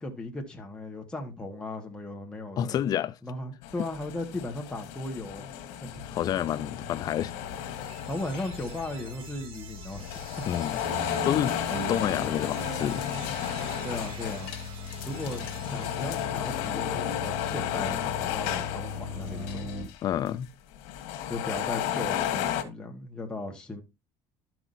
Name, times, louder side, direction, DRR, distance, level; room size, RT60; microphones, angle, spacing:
voice 1, 0.0-2.8 3.2-6.0 8.1-10.2 13.8-14.5 15.0-19.7 21.3-23.8, left 2 dB, 10° left, 1.5 m, -37 dB
voice 2, 2.6-3.2 6.0-7.3 10.5-10.8 11.2-11.6 11.9-13.0 20.0-20.5, left 10 dB, 40° left, 0.4 m, -29 dB
sound 1, 3.6-9.2 9.8-20.0 20.3-20.4 20.8-22.6, left 10 dB, 85° left, 1.5 m, -33 dB
sound 2, 5.9-19.8, left 6 dB, 25° right, 5.3 m, -41 dB
sound 3, 7.4-17.4, right 5 dB, 55° right, 2.6 m, -43 dB
12.0 x 5.9 x 2.7 m
cardioid pair, 140°, 11 cm